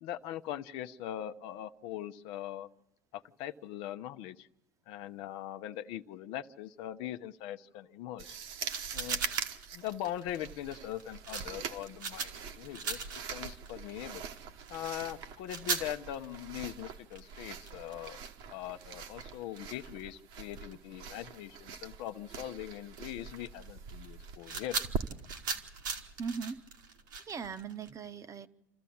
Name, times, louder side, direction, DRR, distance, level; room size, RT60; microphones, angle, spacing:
voice 1, 0.0-2.7 3.1-4.5 4.9-8.4 8.9-9.2 9.7-13.0 13.3-14.3 14.7-18.2 18.5-24.8, left 12 dB, 60° left, 10 dB, 0.8 m, -41 dB
sound 1, 8.2-26.6, right 6 dB, 60° right, 1.3 m, -43 dB
sound 2, 8.7-20.9 21.2-21.4 21.7-27.9, right 5 dB, 85° right, 1.9 m, -40 dB
voice 2, 26.2-26.6 27.2-28.5, right 6 dB, 30° right, 11 dB, 1.0 m, -39 dB
28.0 x 14.0 x 8.6 m, 0.92 s
hypercardioid pair, 80°, 10 cm